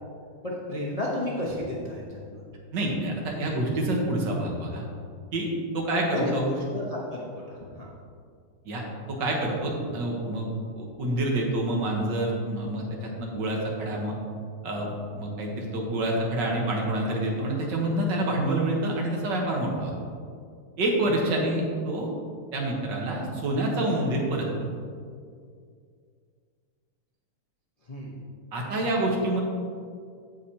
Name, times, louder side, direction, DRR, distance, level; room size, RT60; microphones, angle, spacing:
voice 1, 0.4-2.4 6.1-7.9 21.2-21.3 27.9-28.1, left 1 dB, 65° left, -4 dB, 0.3 m, -32 dB
voice 2, 2.7-4.8 5.3-5.5 5.7-6.4 8.6-8.8 9.1-14.1 14.6-19.9 20.8-22.1 22.5-24.5 28.5-29.4, right 1 dB, 55° right, -1 dB, 1.8 m, -27 dB
15.0 x 4.9 x 2.9 m, 2.2 s
omnidirectional pair, 2.4 m